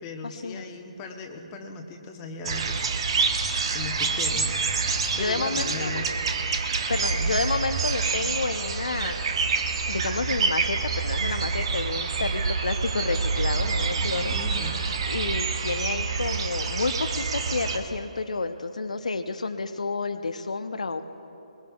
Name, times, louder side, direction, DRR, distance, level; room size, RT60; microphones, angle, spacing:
voice 1, 0.0-3.1 3.7-4.8 5.2-6.2 7.1-7.4 14.3-14.8, left 4 dB, 20° left, 3 dB, 1.1 m, -38 dB
sound 1, 2.4-17.8, right 4 dB, 45° right, 1.0 m, -27 dB
voice 2, 5.1-5.9 6.9-9.2 9.9-14.3 15.1-21.0, left 3 dB, 65° left, 9 dB, 0.7 m, -30 dB
21.5 x 21.5 x 2.3 m, 3.0 s
figure-of-eight pair, 140°, 4 cm